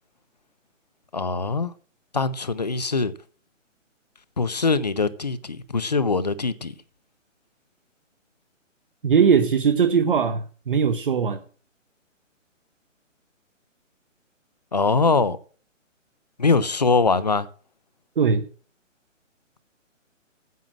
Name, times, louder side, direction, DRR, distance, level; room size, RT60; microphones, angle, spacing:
voice 1, 1.1-1.7 2.1-3.1 4.4-6.7 14.7-15.4 16.4-17.5, left 4 dB, 35° left, 0.5 m, -22 dB
voice 2, 9.0-11.4 18.2-18.4, right 6 dB, 40° right, 0.8 m, -20 dB
9.3 x 7.3 x 7.4 m
hypercardioid pair, 170°, 39 cm